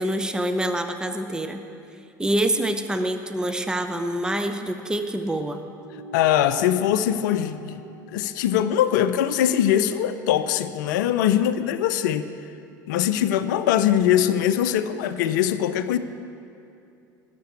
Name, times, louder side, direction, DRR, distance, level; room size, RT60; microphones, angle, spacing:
voice 1, 0.0-1.6 2.2-5.6, right 1 dB, 5° right, 8 dB, 0.7 m, -26 dB
sound 1, 5.8-10.6, left 2 dB, 85° right, 2.3 m, -45 dB
voice 2, 6.1-7.8 8.1-12.3 12.9-16.0, left 10 dB, 65° left, 12 dB, 0.5 m, -22 dB
12.5 x 6.7 x 8.2 m, 2.6 s
figure-of-eight pair, 70°, 11 cm